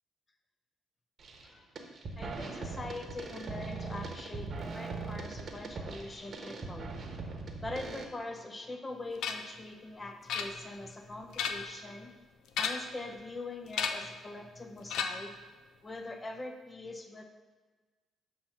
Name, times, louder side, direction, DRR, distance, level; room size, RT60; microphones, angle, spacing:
sound 1, 1.2-1.5 1.8-8.0, right 4 dB, 45° right, 0.9 m, -40 dB
voice 1, 2.2-7.0 7.6-12.1 12.6-15.3 15.8-17.2, left 2 dB, 25° left, 5 dB, 0.6 m, -43 dB
sound 2, 9.2-9.6 10.3-10.9 11.2-11.8 12.5-13.0 13.7-14.2 14.9-15.4, left 6 dB, 85° left, 0.4 m, -34 dB
7.4 x 2.9 x 5.6 m, 1.4 s
cardioid pair, 90°, 0 cm